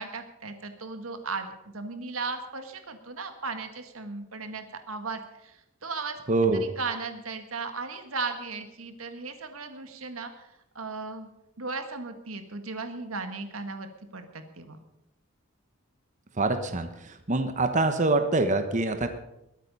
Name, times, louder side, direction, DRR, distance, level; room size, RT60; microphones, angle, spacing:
voice 1, 0.0-5.6 5.8-6.2 6.5-10.5 10.8-11.3 11.6-14.8, right 4 dB, 90° right, 7 dB, 1.8 m, -36 dB
voice 2, 6.3-6.7 16.4-19.1, right 2 dB, 35° right, 7 dB, 1.1 m, -25 dB
21.5 x 9.0 x 5.5 m, 0.87 s
head